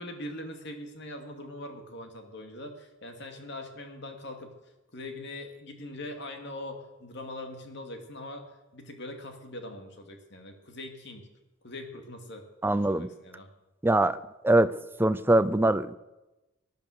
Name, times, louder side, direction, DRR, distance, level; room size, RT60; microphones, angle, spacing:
voice 1, 0.0-4.5 4.9-11.3 11.6-13.5, left 1 dB, 55° left, 4 dB, 2.4 m, -42 dB
voice 2, 12.6-13.1 13.8-14.2 14.4-14.7 15.0-15.9, right 1 dB, 10° right, 13 dB, 0.5 m, -22 dB
19.5 x 11.0 x 6.7 m, 1.0 s
head